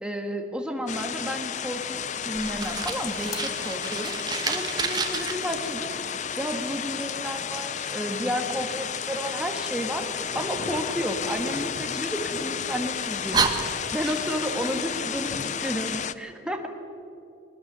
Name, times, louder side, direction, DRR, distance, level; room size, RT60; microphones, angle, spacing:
voice 1, 0.0-16.7, equal, 5° right, 3 dB, 1.6 m, -32 dB
sound 1, 0.9-16.1, left 8 dB, 40° left, 0.5 m, -32 dB
sound 2, 2.1-15.6, left 2 dB, 20° left, 1.2 m, -48 dB
Fire, 2.3-5.3 11.2-12.5 13.0-13.1 13.3-14.5, right 5 dB, 20° right, 1.1 m, -30 dB
20.5 x 19.5 x 7.0 m, 2.6 s
head